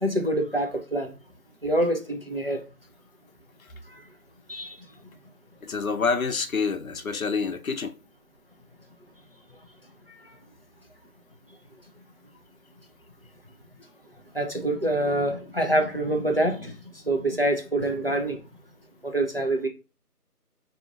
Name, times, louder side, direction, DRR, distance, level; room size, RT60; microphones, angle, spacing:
voice 1, 0.0-1.1 1.6-2.6 4.5-4.8 14.3-16.8 17.1-18.4 19.0-19.7, right 1 dB, 40° right, 0.6 m, -25 dB
voice 2, 5.6-7.9, left 5 dB, 60° left, 0.6 m, -27 dB
4.8 x 2.8 x 2.4 m
figure-of-eight pair, 170°, 47 cm